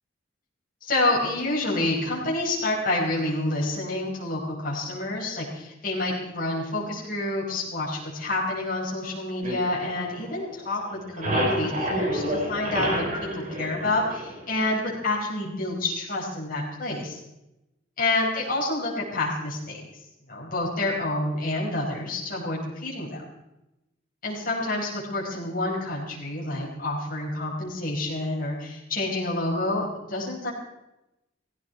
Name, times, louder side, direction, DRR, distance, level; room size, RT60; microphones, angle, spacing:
voice 1, 0.8-17.2 18.0-20.0 20.3-23.2 24.2-30.5, left 2 dB, 45° left, -4 dB, 5.2 m, -28 dB
sound 1, 9.4-10.6 10.9-14.6, equal, 40° right, 3.8 m, -28 dB
17.5 x 16.5 x 4.6 m, 0.93 s
head